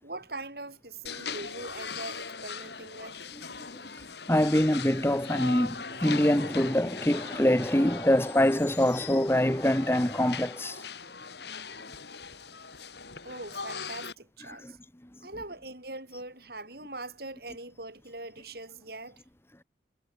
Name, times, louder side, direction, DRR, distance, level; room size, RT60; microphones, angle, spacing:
voice 1, 0.0-3.3 13.2-14.8 15.2-19.2, right 2 dB, 55° right, 7.6 m, -42 dB
sound 1, 1.1-14.1, left 5 dB, 65° left, 3.7 m, -40 dB
voice 2, 4.3-10.8 14.5-14.7, left 1 dB, 15° left, 1.2 m, -25 dB
head